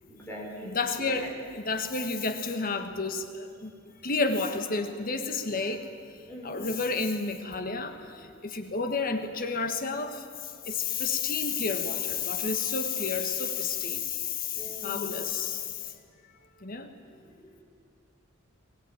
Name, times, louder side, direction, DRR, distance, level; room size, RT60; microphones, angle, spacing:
voice 1, 0.1-0.8 1.2-1.3 6.3-6.6 14.5-15.0 17.2-17.6, equal, 10° left, -4 dB, 6.4 m, -42 dB
voice 2, 0.6-3.8 4.0-5.9 6.4-15.9 16.6-16.9, left 4 dB, 40° left, 7 dB, 1.5 m, -31 dB
21.5 x 19.5 x 9.1 m, 2.2 s
head